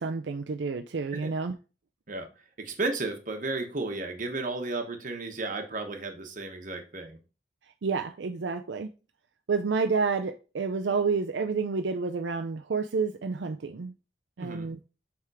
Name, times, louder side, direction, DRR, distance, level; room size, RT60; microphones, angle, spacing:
voice 1, 0.0-1.5 7.8-8.9 9.5-13.9 14.4-14.8, right 4 dB, 75° right, 0.5 m, -29 dB
voice 2, 2.6-7.2 14.4-14.7, right 3 dB, 45° right, 1.2 m, -33 dB
7.4 x 3.6 x 4.8 m
head